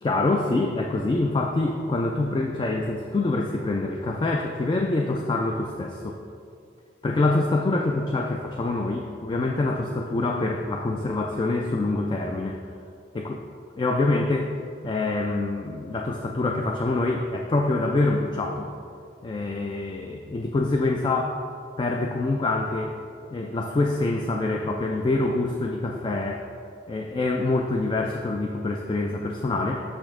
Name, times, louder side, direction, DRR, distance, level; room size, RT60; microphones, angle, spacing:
voice 1, 0.0-6.2 7.0-12.6 13.1-13.4 13.8-14.5 14.8-18.7 19.2-21.4 21.8-22.9 23.3-26.4 26.9-29.8, left 2 dB, 25° left, 2 dB, 0.3 m, -25 dB
6.2 x 5.2 x 3.6 m, 2.4 s
head